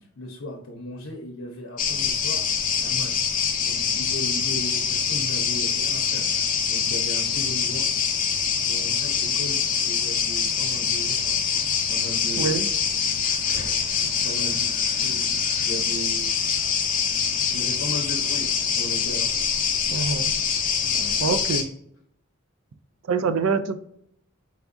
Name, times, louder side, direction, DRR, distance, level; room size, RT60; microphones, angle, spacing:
voice 1, 0.2-2.4 2.8-3.3 3.6-7.9 8.6-11.3 11.9-12.7 13.5-16.3 17.5-19.3 20.8-21.2, equal, 80° left, -1 dB, 0.7 m, -37 dB
sound 1, 1.8-21.6, left 7 dB, 40° left, 0.6 m, -24 dB
voice 2, 12.4-12.7 19.9-20.3 21.2-21.7 23.1-23.7, right 5 dB, 75° right, 10 dB, 0.4 m, -25 dB
4.6 x 3.4 x 2.5 m, 0.71 s
head